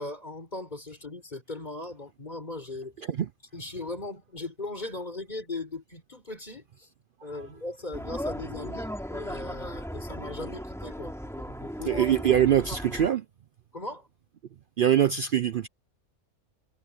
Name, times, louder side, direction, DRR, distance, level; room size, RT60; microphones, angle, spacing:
voice 1, 0.0-3.0 3.5-6.9 7.2-12.0 13.7-14.1, left 2 dB, 30° left, 4.8 m, -38 dB
sound 1, 7.9-13.1, equal, ahead, 2.9 m, -37 dB
voice 2, 11.8-13.3 14.8-15.7, right 10 dB, 85° right, 0.4 m, -24 dB
omnidirectional pair, 1.5 m